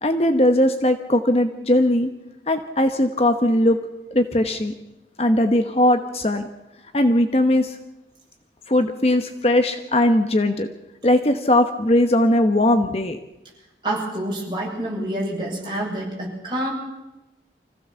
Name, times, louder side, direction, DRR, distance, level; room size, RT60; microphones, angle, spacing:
voice 1, 0.0-2.1 2.5-3.8 4.1-4.7 5.2-6.5 6.9-7.8 8.7-10.7 11.0-13.2, left 1 dB, 35° left, 7 dB, 1.1 m, -19 dB
voice 2, 13.8-16.7, right 1 dB, 25° right, -3 dB, 7.1 m, -27 dB
25.0 x 16.0 x 7.0 m, 1.0 s
head